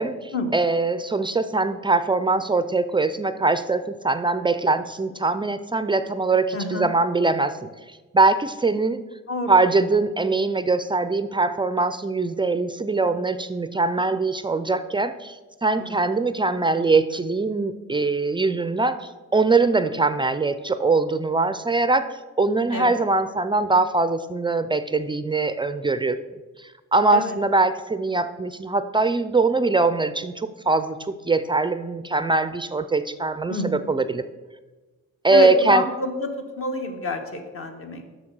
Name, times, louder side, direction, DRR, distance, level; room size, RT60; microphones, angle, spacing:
voice 1, 0.0-9.0 9.5-26.2 26.6-34.2 35.2-35.9, right 3 dB, 15° right, 12 dB, 0.3 m, -22 dB
voice 2, 6.5-6.9 9.3-9.5 15.8-15.9 22.7-22.9 27.1-27.3 33.5-33.9 35.3-36.3 36.6-38.1, left 2 dB, 45° left, 5 dB, 1.3 m, -27 dB
6.5 x 6.2 x 6.0 m, 1.3 s
cardioid pair, 90°, 30 cm